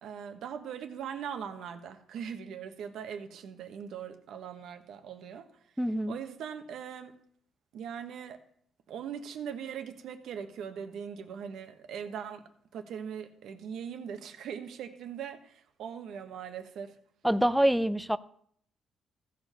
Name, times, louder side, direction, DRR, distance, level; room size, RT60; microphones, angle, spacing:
voice 1, 0.0-5.5 6.1-7.1 7.7-8.4 8.9-12.4 12.7-16.9, right 8 dB, 75° right, 7 dB, 1.1 m, -40 dB
voice 2, 5.8-6.2 17.2-18.2, equal, 5° right, 14 dB, 0.5 m, -25 dB
15.0 x 5.1 x 5.6 m, 0.64 s
cardioid pair, 90°, 0 cm